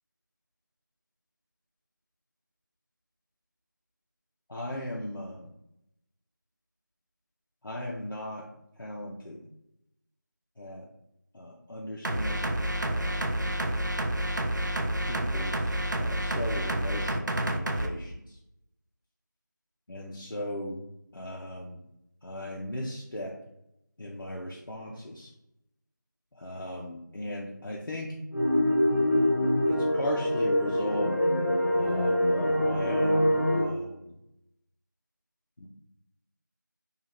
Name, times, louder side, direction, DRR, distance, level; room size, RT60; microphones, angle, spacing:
voice 1, 4.5-5.5 7.6-8.5 8.8-9.4 10.6-10.9 11.3-13.6 15.0-18.4 19.9-20.8 21.1-21.8 22.2-23.4 24.0-25.3 26.3-28.2 29.7-31.2 31.7-34.2 35.6-35.7, left 1 dB, 85° left, -3 dB, 0.6 m, -37 dB
sound 1, 12.0-17.9, right 1 dB, 65° right, 0.4 m, -29 dB
sound 2, 28.3-33.6, left 1 dB, 45° left, 0.8 m, -25 dB
2.7 x 2.4 x 3.1 m, 0.84 s
figure-of-eight pair, 180°, 11 cm